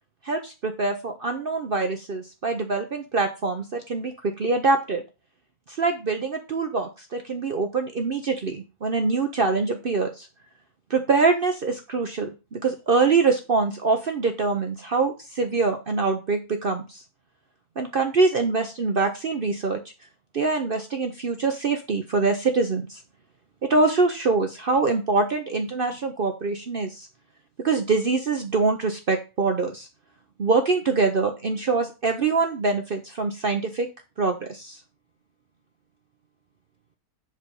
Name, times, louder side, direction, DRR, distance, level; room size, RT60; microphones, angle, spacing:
voice 1, 0.2-5.0 5.7-10.3 10.9-17.0 17.8-19.8 20.3-23.0 23.6-27.1 27.6-29.9 30.4-33.9 34.2-34.8, right 4 dB, 50° right, 6 dB, 0.7 m, -24 dB
7.5 x 3.4 x 5.3 m, 0.29 s
omnidirectional pair, 1.6 m